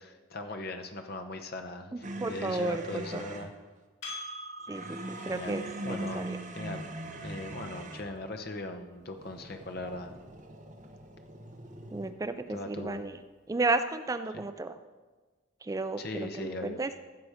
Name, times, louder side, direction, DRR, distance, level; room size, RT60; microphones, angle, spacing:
voice 1, 0.0-3.5 5.3-6.3 6.5-10.2 12.5-13.0 16.0-16.8, left 2 dB, 50° left, 5 dB, 0.8 m, -39 dB
sound 1, 2.0-3.5 4.7-8.2 9.1-12.1, right 1 dB, 40° right, 1.0 m, -42 dB
voice 2, 2.2-3.3 4.7-5.0 5.2-6.4 11.9-13.2 13.5-14.8 15.6-16.9, right 3 dB, 15° right, 10 dB, 0.3 m, -33 dB
Percussion, 4.0-8.8, equal, 85° left, 3.9 m, -46 dB
15.0 x 6.1 x 4.9 m, 1.3 s
head